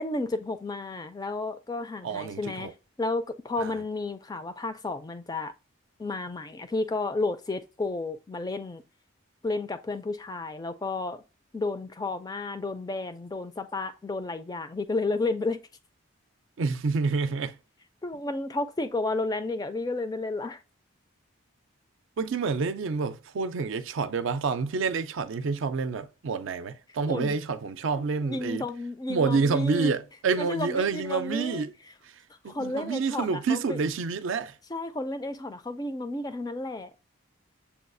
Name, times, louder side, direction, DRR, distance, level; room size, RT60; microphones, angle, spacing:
voice 1, 0.0-5.5 6.0-8.8 9.4-11.2 11.5-15.6 18.0-20.6 27.1-27.3 28.2-29.9 30.4-31.7 32.5-33.8 34.7-37.0, left 2 dB, 20° left, 0.3 m, -32 dB
voice 2, 2.0-2.7 3.6-3.8 16.6-17.6 22.2-28.7 29.1-31.7 32.0-32.1 32.4-34.5, right 4 dB, 70° right, 0.4 m, -28 dB
6.8 x 2.3 x 2.5 m
head